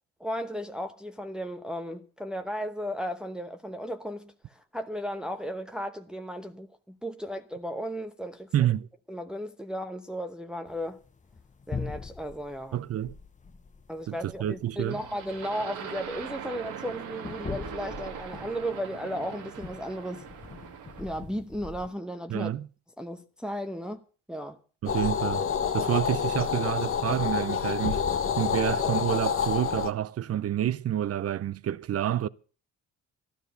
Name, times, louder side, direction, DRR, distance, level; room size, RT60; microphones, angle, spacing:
voice 1, 0.2-8.7 9.1-11.0 11.7-12.8 13.9-20.2 21.0-22.5 23.0-24.6, equal, 5° right, 1.0 m, -35 dB
voice 2, 8.5-8.9 12.7-13.1 14.1-15.0 22.3-22.7 24.8-25.5 25.7-28.0 28.4-32.3, right 11 dB, 50° right, 0.7 m, -28 dB
sound 1, 10.6-21.9, left 5 dB, 25° left, 1.1 m, -42 dB
sound 2, 14.9-21.2, right 8 dB, 90° right, 1.9 m, -41 dB
sound 3, 24.9-29.9, left 7 dB, 45° left, 1.1 m, -28 dB
13.5 x 12.0 x 6.5 m
cardioid pair, 90°, 30 cm